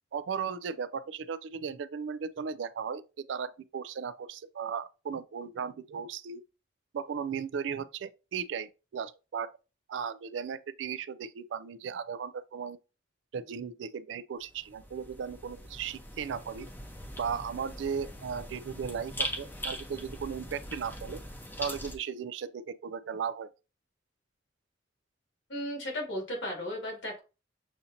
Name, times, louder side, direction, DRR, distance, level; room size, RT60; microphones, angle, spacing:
voice 1, 0.1-6.4 6.9-9.5 9.9-12.8 13.3-16.7 17.2-21.2 21.6-23.5, right 6 dB, 75° right, 0.4 m, -36 dB
sound 1, 14.4-22.0, equal, 10° left, 0.7 m, -41 dB
voice 2, 25.5-27.2, left 1 dB, 75° left, 2.0 m, -35 dB
6.9 x 2.8 x 2.6 m
head